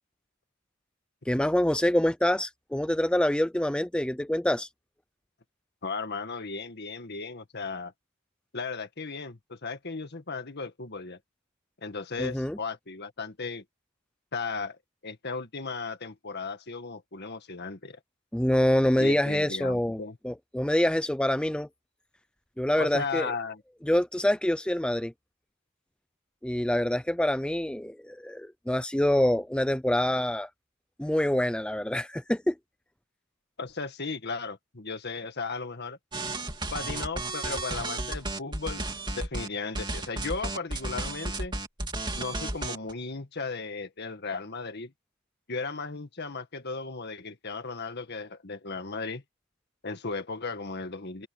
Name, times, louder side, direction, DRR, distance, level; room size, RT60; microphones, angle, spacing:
voice 1, 1.3-4.7 12.2-12.6 18.3-21.7 22.6-23.3 23.8-25.1 26.4-30.5 31.0-32.6, left 1 dB, 5° left, 0.4 m, -26 dB
voice 2, 5.8-7.9 8.5-11.2 11.8-13.6 14.3-18.0 19.0-20.2 22.8-23.6 33.6-36.0 36.7-38.9 39.2-41.5 42.2-44.9 45.5-49.2 49.8-51.3, left 4 dB, 50° left, 1.8 m, -36 dB
sound 1, 36.1-39.5 39.7-42.9, right 2 dB, 20° right, 2.7 m, -33 dB
open air
head